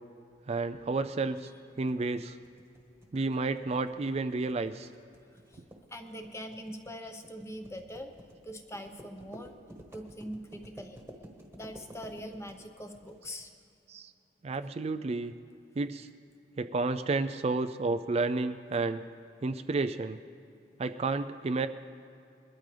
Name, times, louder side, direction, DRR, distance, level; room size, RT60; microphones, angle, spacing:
voice 1, 0.5-1.5 1.8-2.4 3.1-4.9 13.9-14.1 14.4-15.3 15.8-16.1 16.6-19.0 19.4-20.2 20.8-21.7, right 3 dB, 35° right, 9 dB, 0.4 m, -31 dB
sound 1, 1.9-13.5, equal, 15° right, 1.4 m, -52 dB
voice 2, 5.3-5.6 5.9-8.1 8.4-9.5 9.9-11.0 11.5-13.5, equal, 15° left, 5 dB, 0.9 m, -42 dB
22.0 x 12.5 x 3.3 m, 2.7 s
head